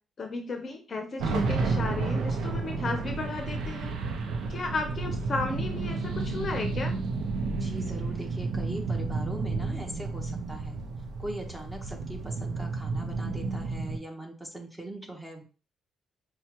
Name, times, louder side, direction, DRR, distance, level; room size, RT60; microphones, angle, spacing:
voice 1, 0.2-3.9 4.5-6.9, left 3 dB, 40° left, 5 dB, 0.6 m, -34 dB
sound 1, 1.2-14.0, right 3 dB, 75° right, 0.6 m, -31 dB
voice 2, 7.6-10.8 11.2-15.4, right 1 dB, 10° right, 1 dB, 1.1 m, -41 dB
5.5 x 2.2 x 2.9 m, 0.36 s
cardioid pair, 90°, 0 cm